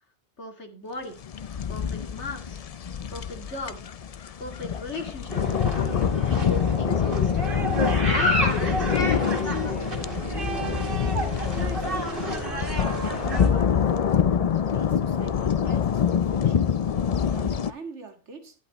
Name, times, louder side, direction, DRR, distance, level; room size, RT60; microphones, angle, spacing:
voice 1, 0.4-1.1 1.7-2.6 3.1-3.8 4.4-5.4 6.1-7.5 8.0-9.9, left 3 dB, 80° left, 2.6 m, -36 dB
sound 1, 1.2-17.7, left 7 dB, 50° left, 0.5 m, -26 dB
sound 2, 5.3-13.5, right 1 dB, 50° right, 2.1 m, -30 dB
voice 2, 11.5-12.6 13.0-16.7 17.3-18.6, right 4 dB, 85° right, 2.2 m, -43 dB
11.5 x 11.0 x 3.0 m
omnidirectional pair, 1.2 m